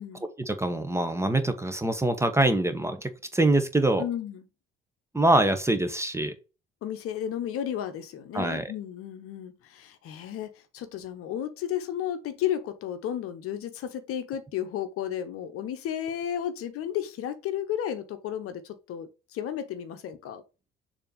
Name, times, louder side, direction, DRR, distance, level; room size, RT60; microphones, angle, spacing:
voice 1, 0.4-4.0 5.1-6.3 8.3-8.7, right 2 dB, 10° right, 1.0 m, -24 dB
voice 2, 4.0-4.4 6.8-20.4, left 10 dB, 50° left, 0.9 m, -33 dB
6.8 x 3.0 x 4.9 m
figure-of-eight pair, 55°, 29 cm